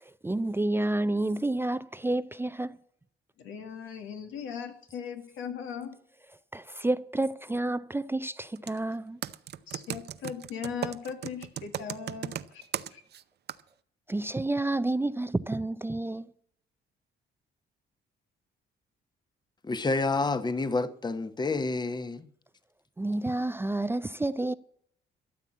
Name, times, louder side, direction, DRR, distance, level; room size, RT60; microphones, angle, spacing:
voice 1, 0.2-2.8 6.5-9.2 14.1-16.3 23.0-24.5, right 2 dB, 10° right, 0.4 m, -29 dB
voice 2, 3.4-6.0 9.7-12.6 12.9-13.0, left 7 dB, 90° left, 2.0 m, -38 dB
Computer keyboard, 8.6-8.8 9.2-13.2 13.5-13.6, right 10 dB, 55° right, 0.6 m, -36 dB
voice 3, 19.6-22.3, left 3 dB, 20° left, 0.9 m, -29 dB
13.0 x 7.1 x 8.4 m
cardioid pair, 90°, 20 cm